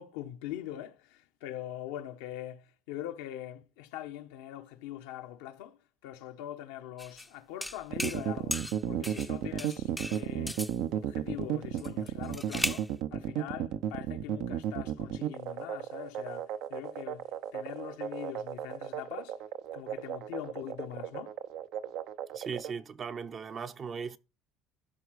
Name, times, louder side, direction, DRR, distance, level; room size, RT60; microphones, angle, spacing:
voice 1, 0.0-10.6 10.9-19.4 19.7-21.4, left 12 dB, 90° left, 1.1 m, -43 dB
sound 1, 7.0-7.3 7.6-8.2 8.5-9.3 9.6-10.8 11.8-12.9, left 1 dB, 5° left, 0.6 m, -36 dB
sound 2, 7.9-22.7, right 10 dB, 75° right, 0.7 m, -34 dB
voice 2, 22.3-24.2, right 6 dB, 40° right, 0.7 m, -38 dB
13.0 x 4.8 x 6.4 m
supercardioid pair, 95°, 0 cm